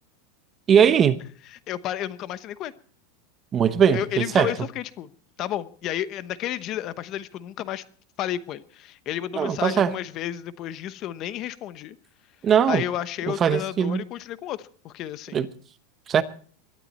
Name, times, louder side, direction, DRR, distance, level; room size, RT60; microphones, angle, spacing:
voice 1, 0.7-1.2 3.5-4.5 9.3-10.0 12.4-12.8 13.3-14.0 15.3-15.5 16.1-16.2, right 8 dB, 25° right, 0.9 m, -20 dB
voice 2, 1.7-2.7 3.9-5.1 5.4-7.8 8.2-12.0 12.7-15.4, left 12 dB, 40° left, 0.9 m, -32 dB
21.0 x 12.5 x 4.2 m
supercardioid pair, 150°, 0 cm